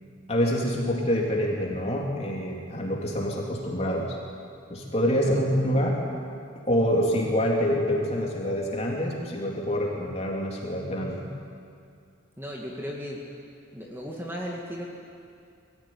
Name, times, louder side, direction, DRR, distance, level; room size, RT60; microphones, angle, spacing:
voice 1, 0.3-4.1 4.7-6.0 6.7-11.3, equal, 30° left, -2 dB, 3.6 m, -26 dB
voice 2, 5.3-5.6 12.4-13.2 13.7-14.8, equal, 10° right, -2 dB, 2.1 m, -36 dB
22.5 x 15.0 x 9.6 m, 2.4 s
head